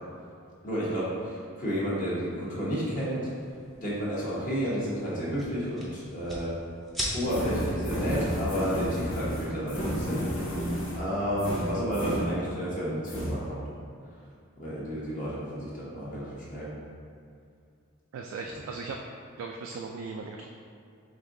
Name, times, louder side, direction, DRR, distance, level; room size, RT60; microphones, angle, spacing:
voice 1, 0.6-3.3 3.8-6.5 7.1-10.2 10.9-13.7 14.6-16.7, equal, 40° left, -8 dB, 0.9 m, -31 dB
sound 1, 3.3-10.1, equal, ahead, 0.6 m, -42 dB
sound 2, 7.2-12.8 13.0-13.3, equal, 65° left, 1.2 m, -32 dB
voice 2, 18.1-19.0 19.4-20.5, right 4 dB, 70° right, 1 dB, 0.3 m, -37 dB
5.1 x 3.6 x 2.6 m, 2.4 s
head